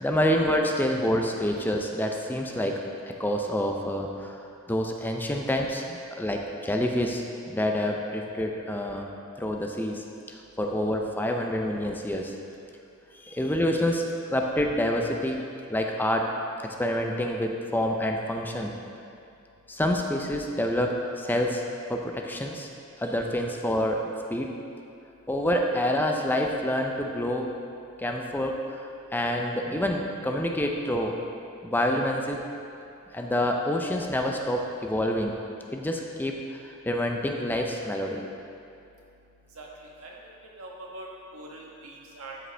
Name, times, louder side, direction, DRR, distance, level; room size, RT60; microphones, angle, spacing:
voice 1, 0.0-2.8 3.2-9.1 9.4-12.3 13.2-14.0 14.3-15.4 15.7-16.3 16.6-18.7 19.7-21.6 21.9-22.7 23.0-24.6 25.3-27.5 28.0-31.2 31.6-32.5 33.1-35.4 35.7-38.3, left 1 dB, 10° left, 2 dB, 0.4 m, -27 dB
voice 2, 39.5-40.2 40.6-41.1 41.3-42.4, right 2 dB, 90° right, -2 dB, 1.3 m, -43 dB
12.5 x 5.0 x 3.4 m, 2.7 s
head